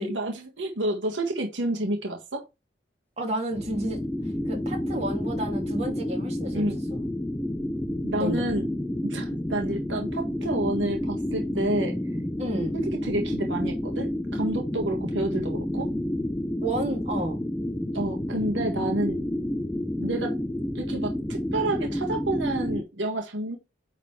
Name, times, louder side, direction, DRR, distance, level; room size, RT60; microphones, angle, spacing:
voice 1, 0.0-2.4 6.5-6.8 8.0-8.7 9.0-12.0 12.7-15.9 17.9-19.2 20.0-20.4 20.7-23.6, right 1 dB, 85° right, 1.6 m, -29 dB
voice 2, 3.2-4.0 4.4-7.0 8.2-8.5 12.4-12.8 16.6-17.4, right 1 dB, 35° right, 2.7 m, -31 dB
sound 1, 3.5-22.8, left 1 dB, 10° left, 0.4 m, -30 dB
9.2 x 4.1 x 3.2 m
head